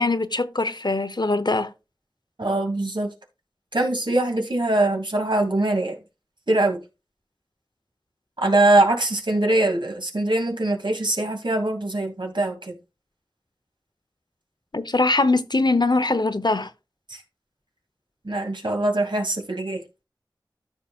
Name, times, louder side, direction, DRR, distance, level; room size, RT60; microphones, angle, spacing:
voice 1, 0.0-1.7 14.7-16.7, left 3 dB, 60° left, 0.9 m, -22 dB
voice 2, 2.4-3.1 3.7-6.0 6.5-6.8 8.4-12.7 17.1-17.2 18.2-19.8, right 2 dB, 75° right, 2.5 m, -22 dB
13.5 x 5.8 x 2.4 m
wide cardioid pair, 45°, 8 cm